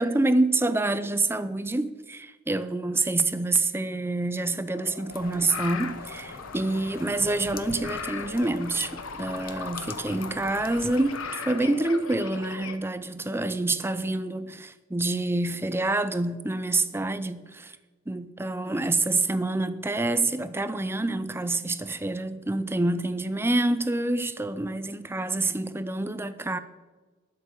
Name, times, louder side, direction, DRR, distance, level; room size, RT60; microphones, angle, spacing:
voice 1, 0.0-17.8 18.1-26.6, right 2 dB, 10° right, 0.5 m, -27 dB
sound 1, 4.7-12.8, left 5 dB, 80° left, 1.1 m, -38 dB
sound 2, 5.1-11.3, left 4 dB, 45° left, 0.8 m, -45 dB
20.0 x 6.8 x 5.2 m
head